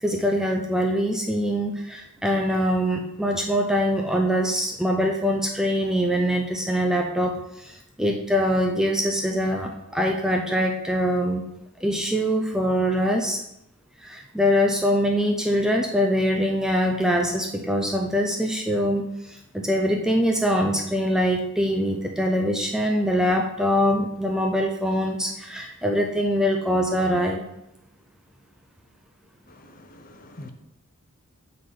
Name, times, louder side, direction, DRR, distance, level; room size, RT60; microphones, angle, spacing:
voice 1, 0.0-11.4 11.8-13.4 14.0-27.4, equal, ahead, 2 dB, 0.4 m, -23 dB
voice 2, 29.5-30.5, left 1 dB, 40° left, 6 dB, 0.7 m, -45 dB
7.0 x 4.0 x 4.9 m, 0.84 s
head